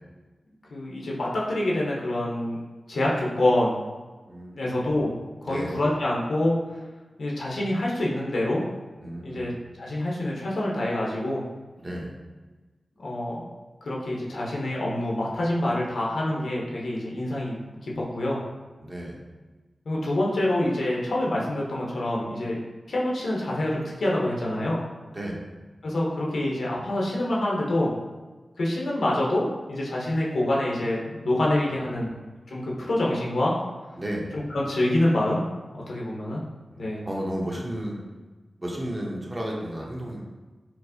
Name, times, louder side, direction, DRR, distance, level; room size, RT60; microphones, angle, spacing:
voice 1, 0.7-2.6 2.9-3.8 4.6-5.2 5.4-6.5 7.2-8.6 9.2-9.5 9.8-11.4 13.0-13.4 13.8-17.6 17.8-18.4 19.9-22.6 22.9-24.8 25.8-27.9 28.6-32.1 32.5-33.5 34.3-35.4 35.7-36.4 36.8-37.0, left 1 dB, 80° left, -3 dB, 0.7 m, -26 dB
voice 2, 4.3-4.6 5.4-5.7 9.0-9.5 11.8-12.1 18.8-19.2 25.1-25.4 34.0-34.3 36.7-38.1 38.6-40.2, equal, 30° right, -2 dB, 0.7 m, -33 dB
4.5 x 2.0 x 2.7 m, 1.3 s
wide cardioid pair, 65°, 0 cm